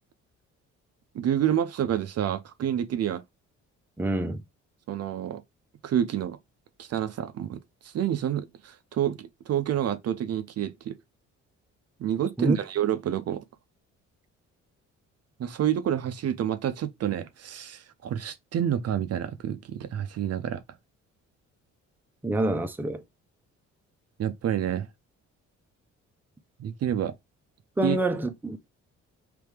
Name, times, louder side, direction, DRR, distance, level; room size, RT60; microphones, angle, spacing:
voice 1, 1.1-3.2 4.9-5.4 5.8-6.4 6.8-10.9 12.0-13.4 15.4-20.6 24.2-24.9 26.6-27.1 27.8-28.0, right 10 dB, 55° right, 0.6 m, -28 dB
voice 2, 4.0-4.4 12.4-12.6 22.2-23.0 27.8-28.6, right 1 dB, 5° right, 0.6 m, -27 dB
3.4 x 3.3 x 3.2 m
cardioid pair, 90°, 30 cm